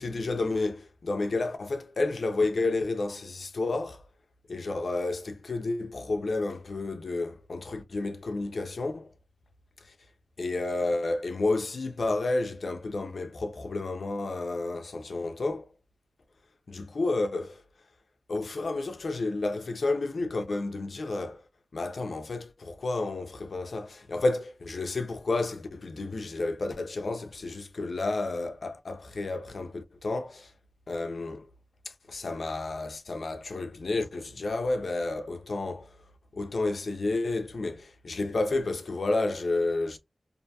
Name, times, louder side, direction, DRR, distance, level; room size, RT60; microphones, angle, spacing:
voice 1, 0.0-4.0 4.5-9.1 10.4-15.7 16.7-17.6 18.3-21.4 21.7-30.5 30.9-31.5 32.1-35.9 36.3-40.0, left 2 dB, 80° left, 0.5 m, -31 dB
2.6 x 2.2 x 2.6 m
wide cardioid pair, 60°, 0 cm